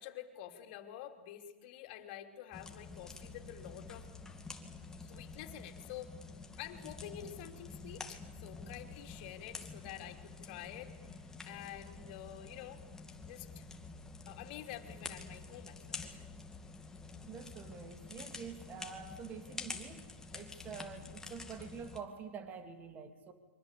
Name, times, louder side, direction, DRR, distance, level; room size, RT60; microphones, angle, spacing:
voice 1, 0.0-4.1 5.0-6.1 6.6-12.8 13.2-13.7 14.3-16.3, left 11 dB, 50° left, 4 dB, 3.5 m, -48 dB
sound 1, 2.5-22.0, left 3 dB, 10° left, 2.4 m, -48 dB
voice 2, 17.3-23.3, right 6 dB, 25° right, 8 dB, 2.8 m, -47 dB
28.5 x 24.5 x 8.5 m, 1.2 s
hypercardioid pair, 130°, 7 cm